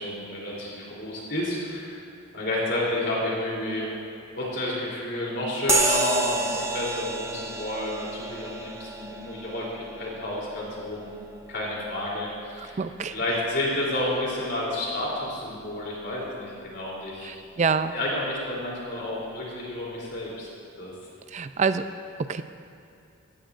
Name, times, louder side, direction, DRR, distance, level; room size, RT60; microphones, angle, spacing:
voice 1, 0.0-2.0 2.3-3.9 4.3-11.2 11.5-12.8 13.1-17.3 17.9-20.5 20.8-20.9, left 1 dB, 55° left, -5 dB, 3.3 m, -30 dB
sound 1, 5.7-13.6, right 2 dB, 15° right, 0.8 m, -31 dB
voice 2, 12.6-13.2 17.2-18.0 21.3-21.9 22.2-22.4, right 5 dB, 35° right, 11 dB, 0.4 m, -27 dB
15.5 x 15.0 x 2.5 m, 2.5 s
head